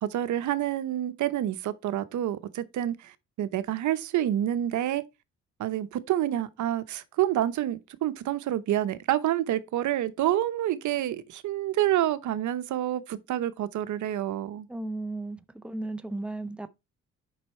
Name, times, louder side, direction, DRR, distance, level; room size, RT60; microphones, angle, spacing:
voice 1, 0.0-5.0 5.6-14.7, right 12 dB, 75° right, 0.9 m, -28 dB
voice 2, 14.7-16.7, right 2 dB, 5° right, 0.8 m, -35 dB
8.0 x 5.6 x 4.4 m
cardioid pair, 90°, 30 cm